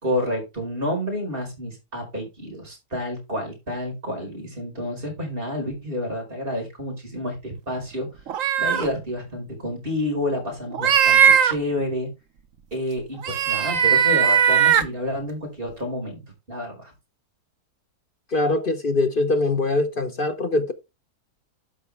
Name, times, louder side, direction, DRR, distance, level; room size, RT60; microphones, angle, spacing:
voice 1, 0.0-8.1 8.6-12.1 12.7-16.2 16.5-16.9, left 1 dB, 30° right, 5.1 m, -29 dB
sound 1, 8.3-8.9 10.7-11.5 13.2-14.9, right 8 dB, 55° right, 1.1 m, -18 dB
voice 2, 18.3-20.7, left 2 dB, 40° left, 0.9 m, -22 dB
12.5 x 5.5 x 3.4 m
omnidirectional pair, 1.7 m